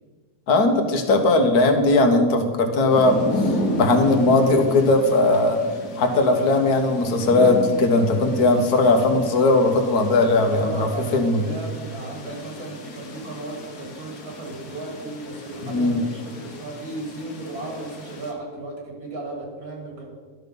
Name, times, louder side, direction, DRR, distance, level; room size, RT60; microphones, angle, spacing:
voice 1, 0.5-5.6 6.0-11.5 15.6-16.0, left 2 dB, 90° left, 5 dB, 1.6 m, -19 dB
sound 1, 2.9-18.3, left 1 dB, 70° left, 1.6 m, -33 dB
voice 2, 10.6-20.1, right 2 dB, 85° right, -1 dB, 2.9 m, -35 dB
12.0 x 5.9 x 5.3 m, 1.5 s
omnidirectional pair, 1.6 m